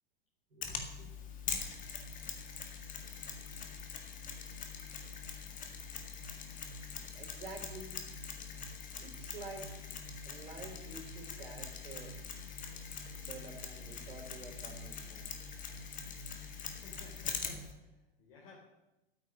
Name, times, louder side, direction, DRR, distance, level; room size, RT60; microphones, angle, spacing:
voice 1, 0.5-1.1 7.1-7.9 9.0-9.7 10.3-12.1 13.1-15.3, right 3 dB, 70° right, 3.6 m, -49 dB
Mechanisms, 0.6-17.7, left 6 dB, 25° left, 2.0 m, -43 dB
voice 2, 16.6-18.5, left 3 dB, 55° left, 3.6 m, -57 dB
9.2 x 8.8 x 9.2 m
figure-of-eight pair, 100°, 30 cm